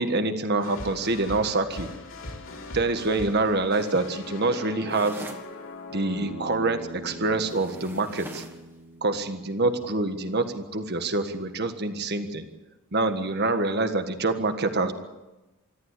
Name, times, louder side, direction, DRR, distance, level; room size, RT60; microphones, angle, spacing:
voice 1, 0.0-1.9 2.7-5.2 5.9-8.4 9.0-12.5 12.9-14.9, right 2 dB, 50° right, 8 dB, 1.6 m, -26 dB
sound 1, 0.6-8.8, left 2 dB, 65° left, 4.2 m, -41 dB
sound 2, 4.9-5.5 7.4-8.6, right 1 dB, 10° right, 1.7 m, -42 dB
Bass guitar, 6.2-10.5, right 1 dB, 65° right, 1.4 m, -44 dB
24.0 x 14.0 x 8.5 m, 1.1 s
head